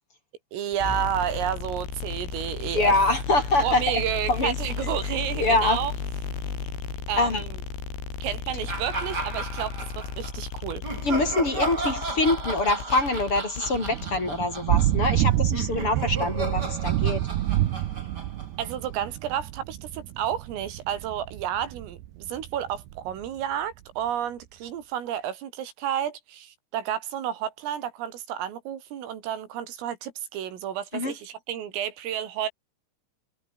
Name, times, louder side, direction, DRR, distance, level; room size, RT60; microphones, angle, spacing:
voice 1, 0.5-2.9 3.6-5.9 7.1-7.6 8.2-10.8 18.6-32.5, right 10 dB, 85° right, 5.5 m, -31 dB
sound 1, 0.7-17.8, left 5 dB, 80° left, 11.0 m, -35 dB
voice 2, 2.7-4.0 4.3-4.5 5.4-5.8 7.2-7.4 8.5-8.6 11.0-17.2 30.9-31.1, left 2 dB, 30° left, 5.2 m, -24 dB
sound 2, 8.7-10.3 10.8-19.1, right 2 dB, 20° right, 5.5 m, -34 dB
Thunder / Rain, 13.7-23.3, right 14 dB, 70° right, 2.9 m, -28 dB
omnidirectional pair, 5.7 m